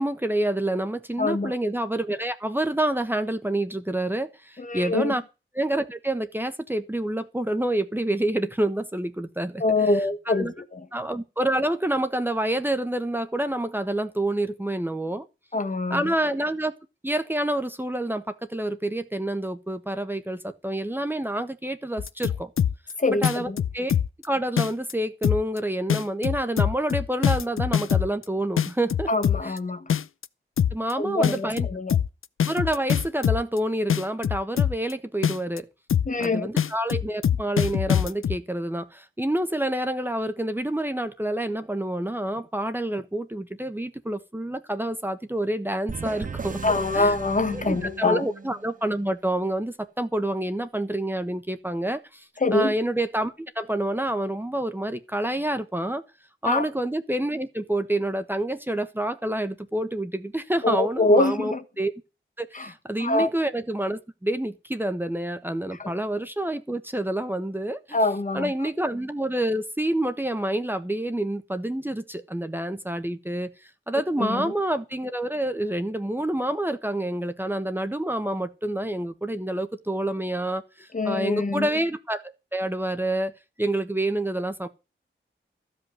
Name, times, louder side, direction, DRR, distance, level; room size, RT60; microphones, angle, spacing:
voice 1, 0.0-5.2 5.5-9.9 10.3-10.5 10.9-15.3 15.9-16.7 17.0-22.5 23.2-23.5 23.7-23.9 24.2-29.1 29.4-29.6 30.7-31.7 32.4-35.7 36.2-46.6 46.9-47.1 47.6-56.0 56.4-61.9 62.4-68.0 68.3-84.7, right 1 dB, 10° right, 1.1 m, -28 dB
voice 2, 1.2-1.5 4.6-5.1 9.6-10.8 15.5-16.1 23.0-23.6 29.1-29.9 31.0-32.0 36.0-36.5 46.6-48.2 52.4-52.7 56.4-56.7 60.6-61.6 62.5-62.7 63.0-63.3 65.8-65.9 67.9-68.5 74.2-74.5 80.9-81.7, left 2 dB, 40° left, 1.4 m, -24 dB
sound 1, 22.0-22.9 23.2-24.2 24.6-24.9 25.2-25.6 25.9-28.2 28.6-29.6 29.9-30.2 30.6-30.9 31.2-33.6 33.9-34.9 35.2-35.6 35.9-36.2 36.6-38.4, left 9 dB, 85° left, 0.6 m, -23 dB
sound 2, 45.9-48.7, right 5 dB, 40° right, 0.9 m, -36 dB
14.5 x 5.4 x 9.2 m
wide cardioid pair, 120°, 21 cm